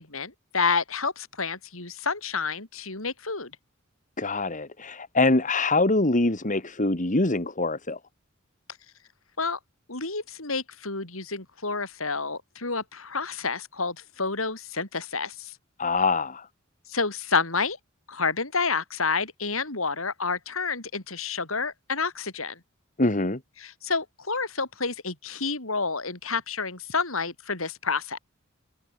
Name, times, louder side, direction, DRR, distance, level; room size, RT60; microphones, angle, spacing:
voice 1, 0.0-3.5 9.4-9.6 9.9-15.6 16.9-17.8 18.1-22.6 23.6-28.2, left 4 dB, 85° left, 5.8 m, -29 dB
voice 2, 4.2-8.0 15.8-16.4 23.0-23.4, left 2 dB, 40° left, 2.2 m, -24 dB
head